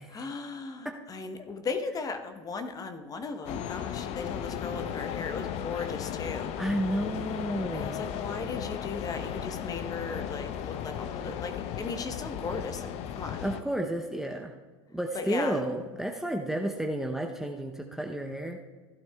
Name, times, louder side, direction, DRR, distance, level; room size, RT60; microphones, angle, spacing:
voice 1, 0.1-6.6 7.7-13.5 15.1-15.6, left 4 dB, 25° left, 8 dB, 0.9 m, -37 dB
sound 1, 3.5-13.6, left 9 dB, 45° left, 0.7 m, -35 dB
voice 2, 6.6-8.1 13.4-14.5 14.9-18.6, right 1 dB, 5° right, 3 dB, 0.7 m, -31 dB
16.0 x 11.5 x 2.3 m, 1.4 s
hypercardioid pair, 95°, 15 cm